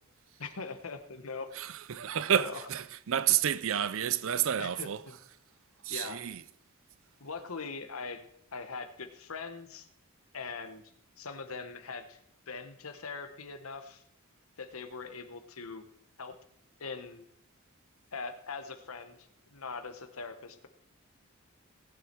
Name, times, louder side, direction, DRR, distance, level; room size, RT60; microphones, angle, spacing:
voice 1, 0.4-1.5 2.4-2.7 4.6-5.2 5.9-6.2 7.2-8.3 8.5-9.9 10.3-10.8 11.2-12.2 12.5-14.0 14.6-15.8 16.2-16.3 16.8-17.2 18.1-20.7, left 4 dB, 75° left, 1.2 m, -41 dB
voice 2, 1.6-5.0 5.9-6.4, right 9 dB, 65° right, 0.5 m, -30 dB
18.0 x 7.5 x 4.6 m
head